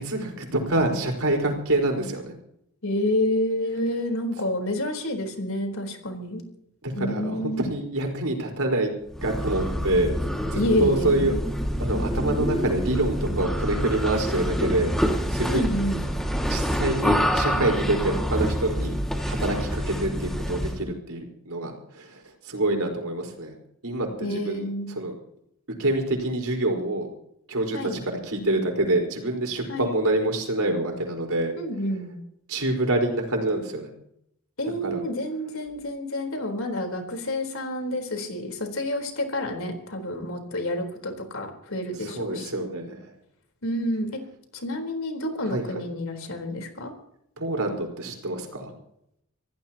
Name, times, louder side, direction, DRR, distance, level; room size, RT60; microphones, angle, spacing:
voice 1, 0.0-2.3 6.8-8.9 9.2-11.3 11.8-15.7 16.4-18.9 19.2-22.2 22.5-23.5 23.8-24.6 25.0-25.1 25.8-27.1 27.5-31.5 32.5-33.9 34.8-35.0 42.0-43.1 45.5-45.6 47.4-48.7, right 2 dB, 85° right, 1 dB, 4.8 m, -26 dB
voice 2, 2.8-6.4 6.9-7.6 10.5-11.4 15.5-16.0 24.2-24.9 27.7-27.9 29.7-29.9 31.6-32.2 34.6-42.7 43.6-44.2 44.5-46.9, left 1 dB, 75° left, 3 dB, 4.1 m, -29 dB
sound 1, 9.1-20.8, equal, ahead, 2.1 m, -27 dB
26.5 x 16.5 x 3.0 m, 0.76 s
head